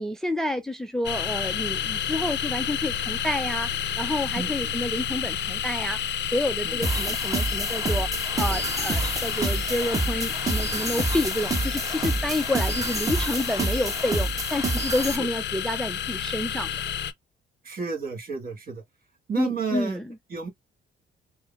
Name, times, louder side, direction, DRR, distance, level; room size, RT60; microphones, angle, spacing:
voice 1, 0.0-16.8 19.4-20.1, left 1 dB, ahead, 0.5 m, -29 dB
sound 1, 1.0-17.1, left 9 dB, 65° left, 0.6 m, -30 dB
sound 2, 6.8-15.2, right 2 dB, 15° right, 1.2 m, -28 dB
voice 2, 17.6-18.8 19.3-20.0 20.3-20.5, right 5 dB, 45° right, 1.9 m, -31 dB
4.8 x 2.1 x 3.4 m
cardioid pair, 90°, 20 cm